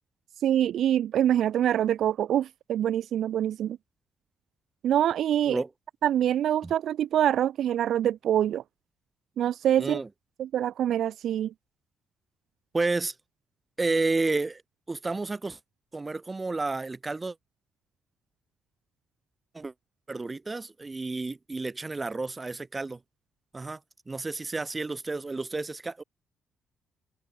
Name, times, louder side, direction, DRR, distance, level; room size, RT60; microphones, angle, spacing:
voice 1, 0.4-3.8 4.8-5.6 6.0-8.6 9.4-10.0 10.4-11.5, right 10 dB, 70° right, 0.6 m, -25 dB
voice 2, 9.8-10.1 12.7-13.1 13.8-14.6 14.9-15.6 15.9-17.3 19.5-19.7 20.1-23.0 23.5-23.8 24.1-26.0, right 3 dB, 20° right, 1.5 m, -31 dB
open air
cardioid pair, 120°, 0 cm